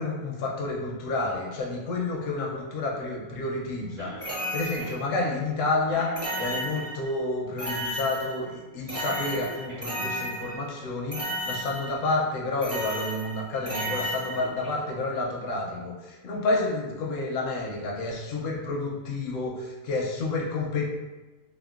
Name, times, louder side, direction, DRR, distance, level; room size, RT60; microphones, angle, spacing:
voice 1, 0.0-4.1 4.5-20.9, left 2 dB, 75° left, -1 dB, 1.0 m, -30 dB
Cough, 4.0-4.5 4.8-4.9 5.4-5.6 5.9-6.9 8.8-10.2 13.5-14.8 15.1-15.2 16.3-16.4, right 1 dB, 70° right, 1.5 m, -43 dB
sound 1, 4.2-5.2 6.2-7.2 7.6-8.6 8.9-10.8 11.1-12.1 12.6-14.7, equal, 15° right, 0.6 m, -33 dB
3.6 x 2.0 x 2.4 m, 1.1 s
omnidirectional pair, 1.4 m